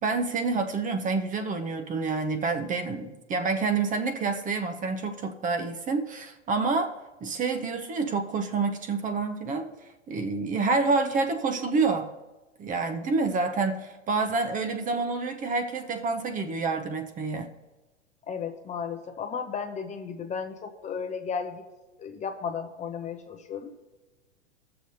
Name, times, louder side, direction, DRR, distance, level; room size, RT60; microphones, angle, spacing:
voice 1, 0.0-6.9 7.2-9.7 10.1-12.1 12.6-17.5, right 4 dB, 20° right, 6 dB, 0.7 m, -28 dB
voice 2, 18.3-21.6 22.0-23.7, left 6 dB, 20° left, 6 dB, 0.7 m, -34 dB
20.0 x 6.7 x 2.7 m, 1.2 s
hypercardioid pair, 100°, 35 cm